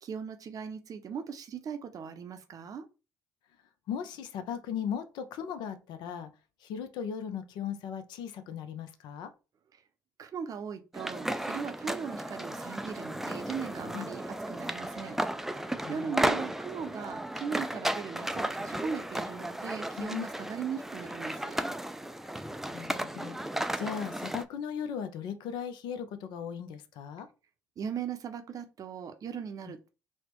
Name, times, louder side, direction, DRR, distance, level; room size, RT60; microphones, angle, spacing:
voice 1, 0.0-2.9 10.2-14.2 14.5-15.2 15.5-15.6 15.9-21.6 27.8-29.9, right 6 dB, 45° right, 0.6 m, -38 dB
voice 2, 3.9-6.3 6.6-9.3 13.9-14.0 15.8-16.2 20.0-20.2 22.7-23.4 23.8-27.3, left 8 dB, 65° left, 0.5 m, -37 dB
sound 1, 10.9-24.4, right 1 dB, 5° right, 0.3 m, -34 dB
4.1 x 2.1 x 3.0 m
hypercardioid pair, 55°, 8 cm